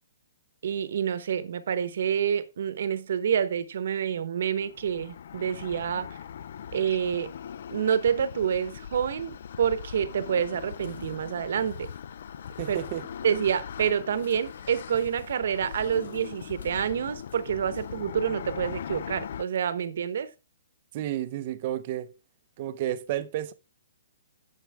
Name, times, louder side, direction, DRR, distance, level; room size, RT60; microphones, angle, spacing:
voice 1, 0.6-6.2 6.7-7.3 7.7-11.9 12.7-12.8 13.2-20.3, right 8 dB, 60° right, 0.9 m, -28 dB
sound 1, 4.5-19.4, left 8 dB, 55° left, 0.3 m, -40 dB
sound 2, 10.5-18.0, left 2 dB, 85° left, 4.5 m, -55 dB
voice 2, 12.6-13.0 20.9-22.1 22.6-23.5, right 12 dB, 35° right, 0.6 m, -31 dB
9.3 x 7.3 x 3.4 m
hypercardioid pair, 170°, 0 cm